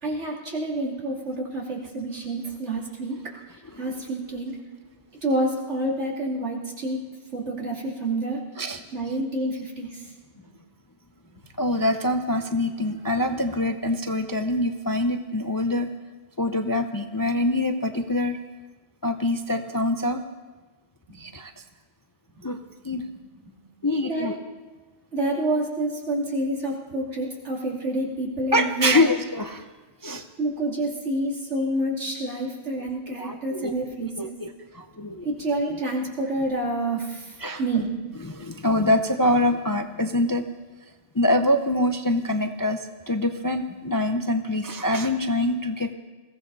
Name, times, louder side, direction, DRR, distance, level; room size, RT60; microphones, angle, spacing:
voice 1, 0.0-3.1 3.8-4.5 5.2-7.0 7.3-8.4 8.9-10.4 21.1-21.2 24.0-24.3 25.1-29.0 30.4-34.3 35.2-37.9, right 1 dB, 75° right, -2 dB, 2.9 m, -28 dB
voice 2, 11.6-15.9 16.4-18.4 19.0-20.2 21.1-21.5 22.4-22.6 22.8-23.0 23.8-24.3 28.5-29.7 30.0-30.2 33.2-33.7 34.0-35.3 37.4-37.6 38.2-40.4 41.1-45.9, left 1 dB, 25° left, 7 dB, 0.5 m, -25 dB
21.0 x 16.0 x 4.0 m, 1.3 s
omnidirectional pair, 1.2 m